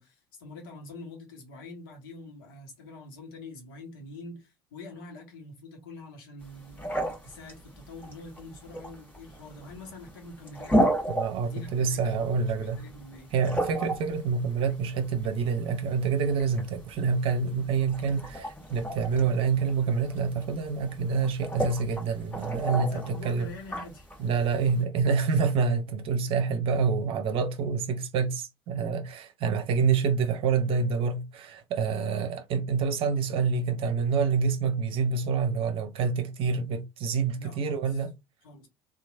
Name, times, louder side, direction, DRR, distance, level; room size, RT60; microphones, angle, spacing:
voice 1, 0.0-10.7 11.4-13.3 22.7-24.1 25.3-25.4 37.3-38.1 38.4-38.7, left 2 dB, 70° left, 1.2 m, -45 dB
sound 1, 6.4-24.8, right 1 dB, 15° left, 1.6 m, -34 dB
voice 2, 11.1-12.8 13.3-23.5 24.2-38.1, right 5 dB, 50° right, 0.8 m, -27 dB
3.0 x 2.4 x 2.5 m
figure-of-eight pair, 65°, 12 cm